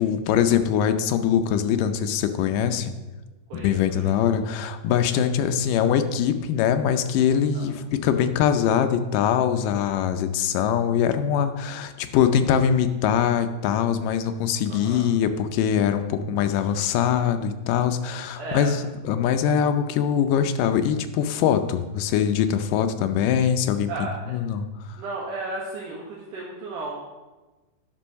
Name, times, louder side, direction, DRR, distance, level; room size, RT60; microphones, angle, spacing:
voice 1, 0.0-3.0 3.5-18.8 19.0-25.0, left 8 dB, 80° left, 9 dB, 2.3 m, -23 dB
voice 2, 3.5-4.1 7.5-7.8 14.7-15.1 18.4-18.8 23.9-24.4 25.0-27.1, right 3 dB, 70° right, -4 dB, 2.8 m, -34 dB
10.0 x 6.1 x 6.3 m, 1.2 s
omnidirectional pair, 3.8 m